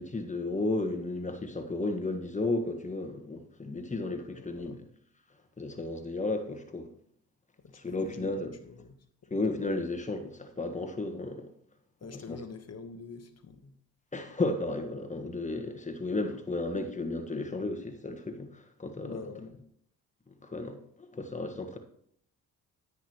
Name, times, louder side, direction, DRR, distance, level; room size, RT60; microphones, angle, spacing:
voice 1, 0.0-4.8 5.6-6.9 7.7-8.5 9.3-11.5 12.1-12.4 14.1-19.2 20.4-21.8, left 2 dB, 20° left, 1.6 m, -33 dB
voice 2, 4.3-4.8 7.6-9.0 9.2-9.6 12.0-13.7 19.0-19.6, left 4 dB, 40° left, 1.3 m, -46 dB
10.0 x 9.0 x 3.1 m
hypercardioid pair, 50°, 38 cm